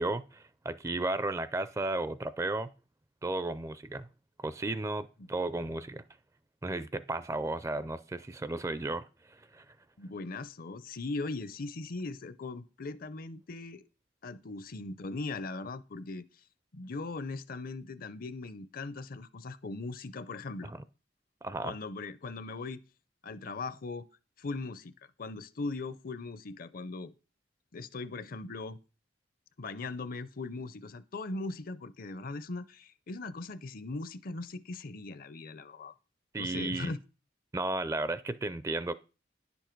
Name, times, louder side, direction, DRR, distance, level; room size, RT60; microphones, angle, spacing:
voice 1, 0.0-2.7 3.2-4.1 4.4-6.0 6.6-9.6 20.6-20.8 21.4-21.8 36.3-36.9 37.5-38.9, right 2 dB, 15° right, 0.4 m, -34 dB
voice 2, 10.0-13.8 14.2-16.3 16.7-20.7 21.6-22.8 23.2-24.1 24.4-24.9 25.2-27.1 27.7-28.8 29.6-35.9 36.4-37.0, left 3 dB, 50° left, 0.6 m, -39 dB
10.5 x 7.1 x 4.5 m
head